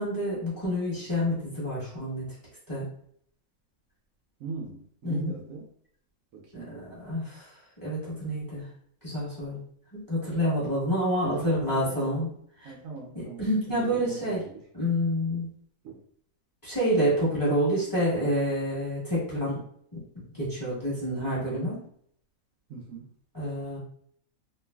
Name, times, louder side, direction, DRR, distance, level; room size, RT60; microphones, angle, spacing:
voice 1, 0.0-2.3 2.7-2.9 5.0-5.3 6.5-7.5 7.8-8.7 9.0-9.6 10.1-12.3 12.6-12.7 13.1-14.4 14.7-15.5 16.6-19.6 19.9-21.8 23.3-23.8, equal, 15° left, -9 dB, 1.3 m, -28 dB
voice 2, 4.4-5.7 6.3-6.9 11.2-12.3 12.6-14.6 15.0-15.1 15.8-16.0 22.7-23.1, right 4 dB, 75° right, 0 dB, 1.0 m, -40 dB
3.1 x 2.4 x 2.2 m, 0.65 s
omnidirectional pair, 1.5 m